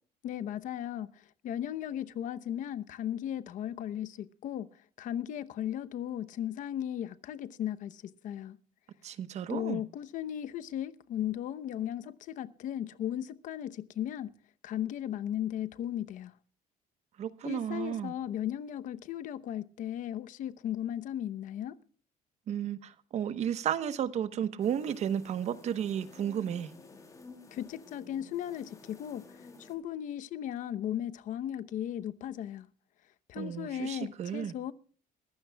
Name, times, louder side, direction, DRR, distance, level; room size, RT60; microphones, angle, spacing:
voice 1, 0.2-4.7 5.0-8.6 9.5-14.3 14.6-16.3 17.4-21.8 27.5-29.2 29.6-32.7 33.3-34.7, left 11 dB, 60° left, 0.9 m, -36 dB
voice 2, 9.0-9.8 17.2-18.1 22.5-26.7 33.4-34.5, right 9 dB, 45° right, 1.1 m, -33 dB
sound 1, 24.6-29.7, left 3 dB, 20° left, 3.0 m, -53 dB
23.0 x 15.0 x 2.3 m
cardioid pair, 160°, 15 cm